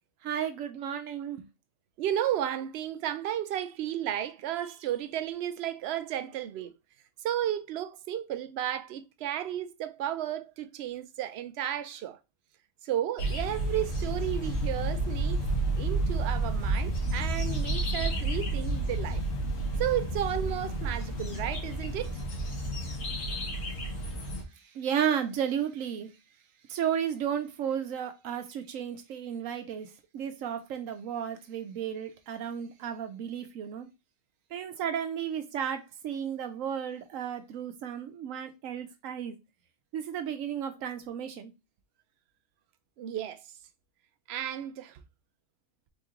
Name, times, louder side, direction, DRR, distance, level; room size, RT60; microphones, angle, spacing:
voice 1, 0.2-1.4 24.7-26.1 26.7-29.9 30.1-33.9 34.5-39.4 39.9-41.5, right 8 dB, 80° right, 1.0 m, -33 dB
voice 2, 2.0-6.7 7.2-12.2 12.8-15.4 15.8-19.2 19.8-22.2 43.0-43.4 44.3-45.0, right 11 dB, 65° right, 0.7 m, -33 dB
sound 1, 13.2-24.4, right 2 dB, 80° left, 1.6 m, -31 dB
4.2 x 3.0 x 3.6 m
omnidirectional pair, 1.4 m